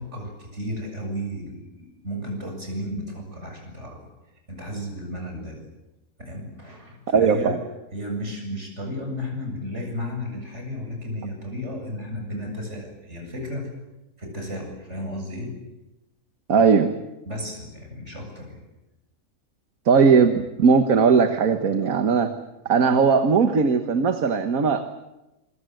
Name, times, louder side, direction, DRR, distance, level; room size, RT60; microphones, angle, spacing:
voice 1, 0.0-4.0 4.5-5.6 6.2-7.5 7.9-13.7 14.2-15.5 17.3-18.6, equal, 50° right, 2 dB, 8.0 m, -33 dB
voice 2, 7.1-7.6 16.5-17.0 19.9-22.3 22.7-24.8, right 5 dB, 70° right, 7 dB, 1.8 m, -18 dB
26.5 x 24.0 x 7.8 m, 0.98 s
omnidirectional pair, 1.5 m